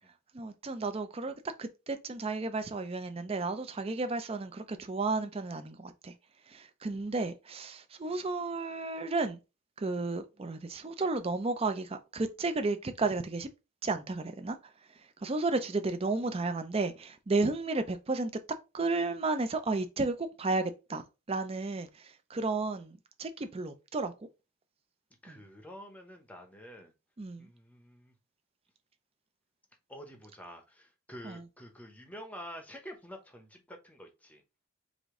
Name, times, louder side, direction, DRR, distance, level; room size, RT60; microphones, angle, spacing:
voice 1, 0.3-6.1 6.5-9.4 9.8-13.5 13.8-18.3 18.7-24.3 25.3-25.4 27.2-27.5 31.2-31.4, right 3 dB, 25° right, 0.5 m, -33 dB
voice 2, 25.2-26.9 27.4-28.1 29.9-34.4, equal, 5° left, 0.8 m, -48 dB
5.0 x 2.6 x 3.6 m
head